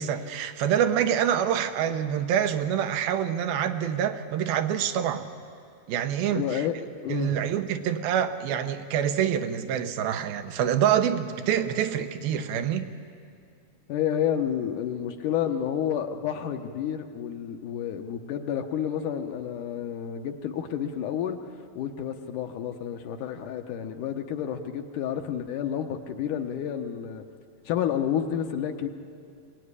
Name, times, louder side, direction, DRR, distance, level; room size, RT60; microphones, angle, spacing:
voice 1, 0.0-5.3 5.9-6.7 7.1-12.9, right 9 dB, 80° right, 8 dB, 2.9 m, -26 dB
voice 2, 6.3-7.4 13.9-21.4 21.8-27.2 27.7-28.9, left 9 dB, 70° left, 6 dB, 2.3 m, -30 dB
22.5 x 19.5 x 9.8 m, 2.4 s
omnidirectional pair, 4.2 m